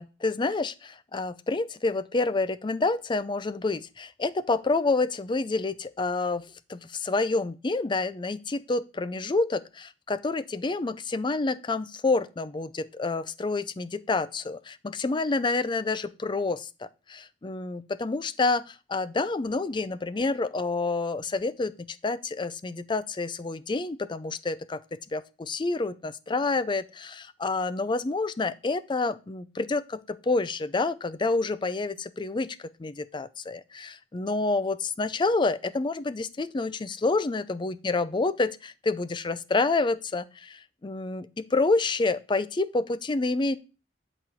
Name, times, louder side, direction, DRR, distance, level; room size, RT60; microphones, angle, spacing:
voice 1, 0.0-6.4 6.7-43.6, left 3 dB, 25° left, 15 dB, 0.4 m, -28 dB
10.5 x 4.3 x 4.9 m, 0.31 s
head